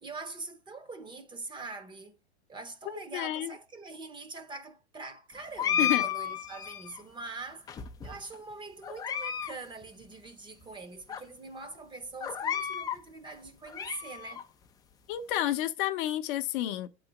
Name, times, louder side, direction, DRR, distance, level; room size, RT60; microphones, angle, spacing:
voice 1, 0.0-2.2 2.5-7.8 8.0-14.4, right 3 dB, 15° right, 0.7 m, -43 dB
voice 2, 3.1-3.5 5.8-6.1 15.1-16.9, left 13 dB, 50° left, 0.6 m, -30 dB
sound 1, 5.6-7.0 7.7-8.3 8.8-9.5 9.8-9.9 10.6-10.7 11.1-11.2 12.2-13.0 13.5-14.4, left 8 dB, 10° left, 0.3 m, -32 dB
8.8 x 4.0 x 5.7 m
hypercardioid pair, 125°, 34 cm